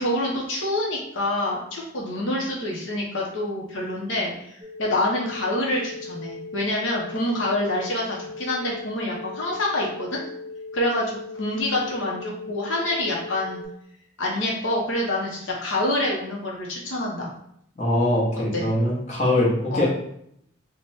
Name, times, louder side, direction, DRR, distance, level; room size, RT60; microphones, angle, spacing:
voice 1, 0.0-4.5 4.8-10.2 10.7-13.6 14.2-17.3 18.5-18.6 19.7-19.9, left 1 dB, 75° left, -3 dB, 0.7 m, -26 dB
sound 1, 4.6-13.6, left 3 dB, 20° right, 0.8 m, -38 dB
voice 2, 17.8-19.9, left 1 dB, 35° left, -5 dB, 0.9 m, -22 dB
3.3 x 2.1 x 4.0 m, 0.73 s
head